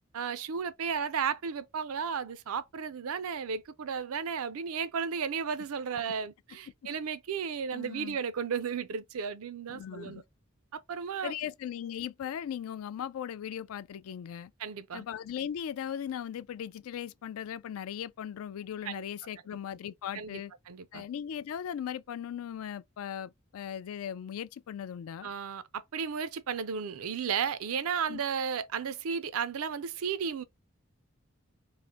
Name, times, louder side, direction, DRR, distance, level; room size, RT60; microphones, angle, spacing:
voice 1, 0.1-10.2 10.7-11.3 14.6-15.0 18.8-19.0 20.1-20.4 20.7-21.1 25.2-30.4, right 6 dB, 85° right, 0.5 m, -34 dB
voice 2, 7.7-8.2 9.7-10.2 11.2-14.5 14.9-20.5 20.9-25.3 28.1-28.2, left 9 dB, 80° left, 0.3 m, -38 dB
3.2 x 2.5 x 3.5 m
head